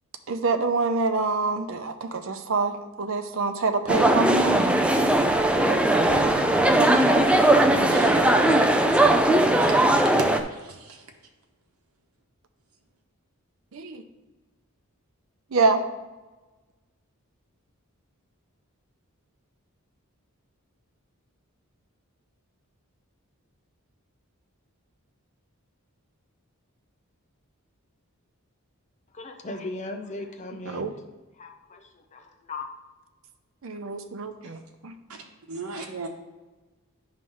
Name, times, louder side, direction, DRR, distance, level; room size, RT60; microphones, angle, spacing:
voice 1, 0.3-4.7 5.6-7.2 7.7-8.1 13.7-14.0 15.5-15.8 30.7-30.9 33.6-34.9, right 4 dB, 65° right, 0.6 m, -27 dB
sound 1, 3.9-10.4, right 1 dB, 5° right, 0.4 m, -19 dB
voice 2, 7.9-9.7 10.5-11.1 34.4-34.6 35.1-35.2 35.5-36.1, right 3 dB, 80° right, 0.9 m, -36 dB
voice 3, 29.1-30.9 31.4-32.7, left 2 dB, 35° left, 0.6 m, -37 dB
9.2 x 3.2 x 5.5 m
head